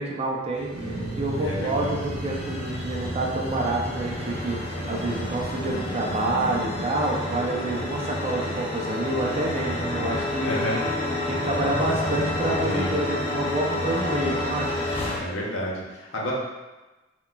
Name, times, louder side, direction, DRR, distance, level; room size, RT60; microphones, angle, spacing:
voice 1, 0.0-10.6 11.3-14.9, right 2 dB, 35° right, -1 dB, 0.4 m, -28 dB
sound 1, 0.6-15.2, left 1 dB, 30° left, 0.4 m, -30 dB
sound 2, 0.7-6.9, right 1 dB, 75° right, 0.7 m, -36 dB
voice 2, 1.4-2.0 10.4-10.8 12.7-12.9 15.2-16.3, left 1 dB, 80° left, -3 dB, 0.6 m, -30 dB
3.8 x 2.2 x 2.2 m, 1.1 s
head